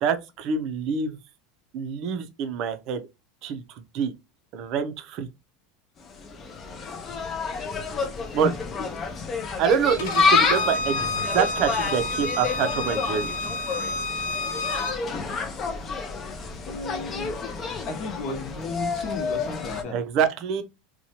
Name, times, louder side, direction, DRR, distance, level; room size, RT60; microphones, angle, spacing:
voice 1, 0.0-1.2 1.7-3.0 3.4-3.6 3.9-4.1 4.5-5.3 8.3-8.5 9.6-13.3 19.9-20.6, right 7 dB, 45° right, 0.5 m, -26 dB
Insect, 6.0-19.8, left 4 dB, 25° left, 0.4 m, -29 dB
Bowed string instrument, 10.0-14.9, left 2 dB, 70° left, 0.6 m, -29 dB
voice 2, 16.7-17.4 17.9-20.0, left 3 dB, 50° left, 0.9 m, -33 dB
2.7 x 2.2 x 2.8 m
supercardioid pair, 145°, 0 cm